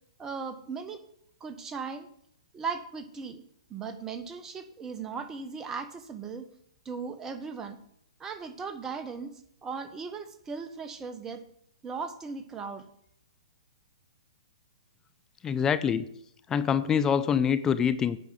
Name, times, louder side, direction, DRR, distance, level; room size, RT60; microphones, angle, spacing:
voice 1, 0.2-1.0 1.4-2.1 2.5-3.4 3.7-6.4 6.8-7.8 8.2-9.3 9.6-11.4 11.8-12.8, right 5 dB, 15° right, 9 dB, 1.1 m, -37 dB
voice 2, 15.4-16.1 16.5-18.2, left 7 dB, 15° left, 13 dB, 0.5 m, -25 dB
9.3 x 5.4 x 7.8 m, 0.69 s
hypercardioid pair, 125°, 3 cm